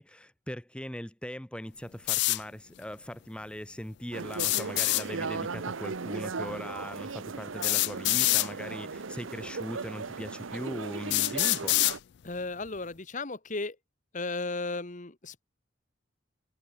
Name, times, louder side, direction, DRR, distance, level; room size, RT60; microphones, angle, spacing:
voice 1, 0.0-11.8, equal, 5° left, 1.0 m, -40 dB
sound 1, 2.1-2.4 4.3-5.0 6.5-6.6 7.6-8.5 9.5-9.6 10.3-10.4 11.1-12.0, left 20 dB, 60° left, 0.3 m, -25 dB
sound 2, 4.1-12.0, right 4 dB, 80° right, 0.8 m, -37 dB
voice 2, 12.2-13.8 14.1-15.4, left 3 dB, 40° left, 1.4 m, -35 dB
head